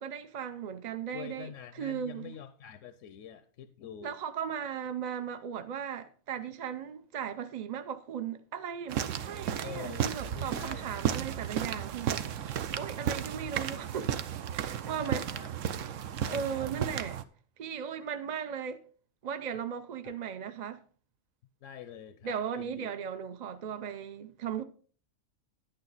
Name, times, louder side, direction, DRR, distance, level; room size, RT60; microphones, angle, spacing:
voice 1, 0.0-1.5 1.8-2.3 4.0-14.2 14.5-15.3 16.3-17.2 17.6-18.8 19.2-20.8 22.2-24.6, right 8 dB, 50° right, 0.5 m, -37 dB
voice 2, 1.1-4.1 9.6-11.0 15.0-15.5 16.2-16.7 20.0-20.2 21.6-22.9, left 9 dB, 80° left, 1.0 m, -46 dB
sound 1, 8.9-17.2, right 9 dB, 85° right, 1.0 m, -34 dB
9.9 x 8.9 x 4.0 m
omnidirectional pair, 1.3 m